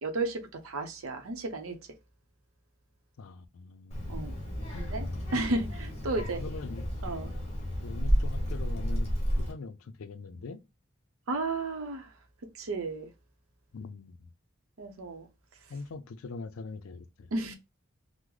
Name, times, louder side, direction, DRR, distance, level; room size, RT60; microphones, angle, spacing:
voice 1, 0.0-1.8 4.1-4.4 4.8-6.4 7.0-7.3 11.3-12.1 12.5-13.1 14.8-15.3 15.6-15.7 17.3-17.5, right 2 dB, 80° right, 0.6 m, -33 dB
voice 2, 3.2-4.2 4.7-4.9 6.2-6.9 7.8-10.6 13.7-14.3 15.7-17.3, left 4 dB, 80° left, 0.4 m, -43 dB
Child speech kid speaking, 3.9-9.5, equal, 30° left, 1.1 m, -31 dB
3.1 x 2.0 x 3.7 m
head